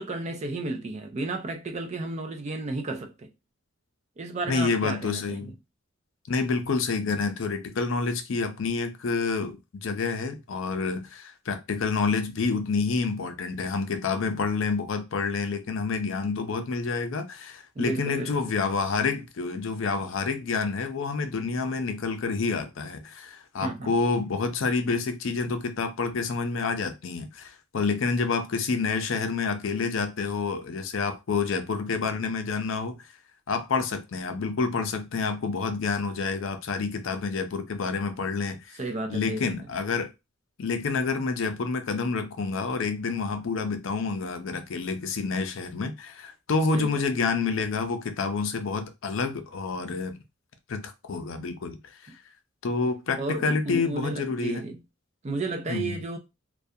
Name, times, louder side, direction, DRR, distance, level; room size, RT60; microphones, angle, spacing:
voice 1, 0.0-3.3 4.2-5.5 17.8-18.5 23.6-23.9 38.8-39.6 46.7-47.0 53.2-54.8 55.2-56.2, right 2 dB, 35° right, 0.4 m, -33 dB
voice 2, 4.5-5.5 6.3-33.0 33.5-38.8 39.1-40.1 40.6-50.2 50.7-51.8 52.6-54.6 55.7-56.0, left 4 dB, 70° left, 0.5 m, -28 dB
2.3 x 2.3 x 2.6 m
head